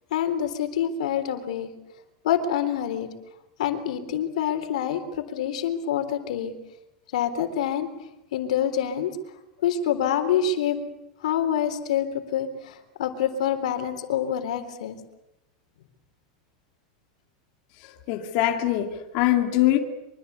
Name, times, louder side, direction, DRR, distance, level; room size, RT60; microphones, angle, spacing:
voice 1, 0.1-1.7 2.2-3.1 3.6-5.0 5.3-6.5 7.1-7.9 8.3-9.1 9.6-10.8 11.2-15.0, left 9 dB, 80° left, 3.7 m, -26 dB
voice 2, 18.1-19.8, left 14 dB, 40° left, 2.7 m, -22 dB
25.5 x 24.5 x 8.2 m
supercardioid pair, 175°, 4 cm